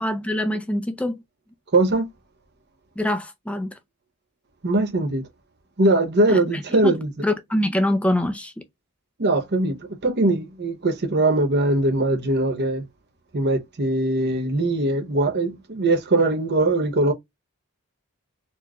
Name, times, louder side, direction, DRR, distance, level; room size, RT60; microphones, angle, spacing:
voice 1, 0.0-1.2 3.0-3.7 6.3-6.4 6.8-6.9 7.2-8.6, left 1 dB, 5° left, 0.5 m, -24 dB
voice 2, 1.7-2.1 4.6-5.3 5.8-7.1 9.2-12.9 13.3-17.1, right 2 dB, 50° right, 0.8 m, -21 dB
4.3 x 2.9 x 2.3 m
head